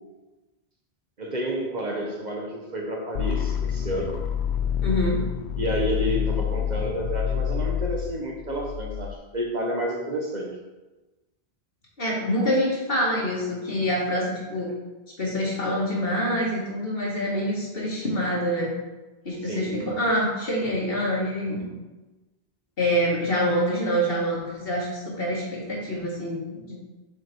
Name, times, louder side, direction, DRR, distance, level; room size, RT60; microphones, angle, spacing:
voice 1, 1.2-4.2 5.6-10.5 19.4-19.8, equal, 45° right, -1 dB, 1.3 m, -30 dB
sound 1, 3.2-9.1, left 8 dB, 85° left, 0.9 m, -27 dB
voice 2, 4.8-5.2 12.0-14.7 15.2-18.7 19.2-21.7 22.8-26.8, equal, 60° left, -5 dB, 2.4 m, -26 dB
7.1 x 5.3 x 4.7 m, 1.1 s
omnidirectional pair, 1.1 m